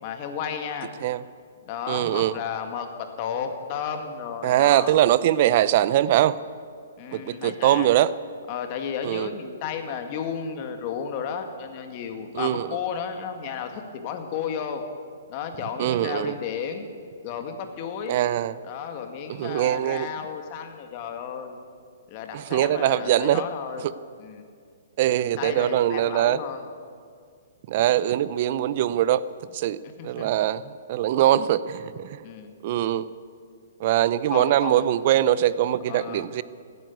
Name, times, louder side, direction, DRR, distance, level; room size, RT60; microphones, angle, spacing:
voice 1, 0.0-0.9 1.7-5.0 7.0-8.0 8.5-14.8 15.3-16.9 17.2-18.2 18.6-21.6 22.1-23.9 24.2-24.4 25.2-26.6 29.8-30.3 32.2-32.5 34.3-34.9 35.9-36.3, left 7 dB, 40° left, 6 dB, 1.8 m, -33 dB
voice 2, 1.9-2.4 4.4-6.4 7.1-8.1 9.0-9.3 12.3-12.7 15.8-16.3 18.1-18.5 19.3-20.1 22.3-23.4 23.8-23.9 25.0-26.4 27.7-29.2 29.5-32.2 32.6-33.1 33.8-36.4, right 12 dB, 45° right, 17 dB, 0.6 m, -22 dB
15.5 x 9.5 x 9.4 m, 2.2 s
hypercardioid pair, 145°, 0 cm